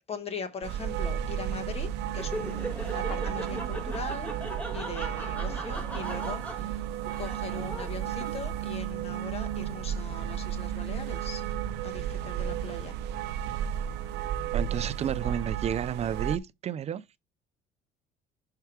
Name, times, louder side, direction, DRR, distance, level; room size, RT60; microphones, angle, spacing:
voice 1, 0.0-4.3 4.7-6.8 7.2-11.4 11.8-13.0 15.2-15.4, left 4 dB, 35° left, 1.3 m, -40 dB
sound 1, 0.6-16.4, right 10 dB, 85° right, 0.6 m, -33 dB
Laughter, 2.1-8.7, equal, 10° left, 1.7 m, -39 dB
voice 2, 14.5-17.2, right 9 dB, 40° right, 0.4 m, -31 dB
5.7 x 4.6 x 4.6 m
cardioid pair, 110°, 17 cm